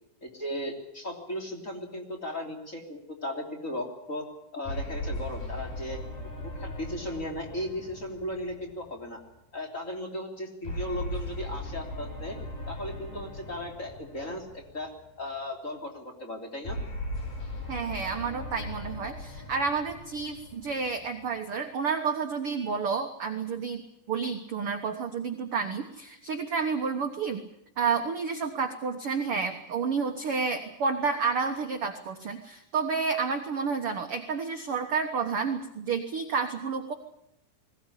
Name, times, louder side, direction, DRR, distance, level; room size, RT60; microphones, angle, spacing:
voice 1, 0.2-4.3 4.5-6.0 6.6-9.2 9.5-12.4 12.7-14.9 15.2-16.8, left 1 dB, 20° left, 2 dB, 3.1 m, -36 dB
sound 1, 4.6-9.2 10.6-15.0 16.6-21.2, left 1 dB, 55° left, 7.2 m, -38 dB
voice 2, 17.7-23.8 24.1-27.4 27.8-36.9, right 5 dB, 65° right, 6 dB, 1.3 m, -30 dB
21.5 x 17.5 x 9.9 m, 0.83 s
omnidirectional pair, 4.5 m